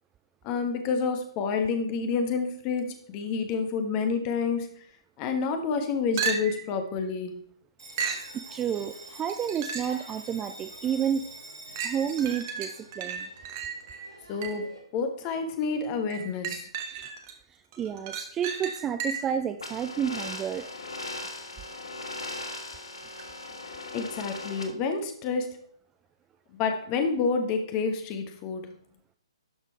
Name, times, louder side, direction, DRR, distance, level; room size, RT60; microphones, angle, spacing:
voice 1, 0.4-4.8 5.2-7.5 14.3-16.7 23.9-25.6 26.5-28.7, left 5 dB, 25° left, 7 dB, 1.2 m, -29 dB
sound 1, 6.2-6.7 8.0-8.3 9.3-10.0 10.6-10.7 11.8-14.7 16.1-17.3 17.7-19.4 23.2-23.3, right 6 dB, 35° right, 1.2 m, -34 dB
Bell, 7.8-14.8, right 1 dB, 70° right, 2.8 m, -46 dB
voice 2, 8.3-11.3 11.8-13.3 17.5-20.7, right 8 dB, 15° right, 8 dB, 0.3 m, -30 dB
sound 2, 19.6-24.6, left 2 dB, 65° left, 1.6 m, -38 dB
12.0 x 4.4 x 4.6 m, 0.64 s
figure-of-eight pair, 125°, 3 cm